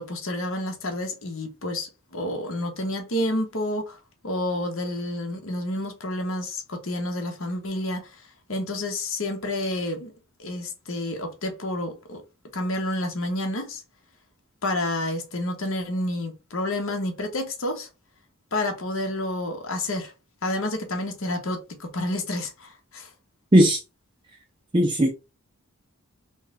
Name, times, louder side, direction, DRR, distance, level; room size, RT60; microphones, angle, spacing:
voice 1, 0.0-4.0 4.2-8.1 8.5-10.1 10.4-12.2 12.5-13.8 14.6-17.9 18.5-20.1 20.4-23.1, left 1 dB, 65° left, 1.1 m, -29 dB
voice 2, 24.7-25.1, equal, 25° right, 0.5 m, -17 dB
4.0 x 2.3 x 3.7 m
head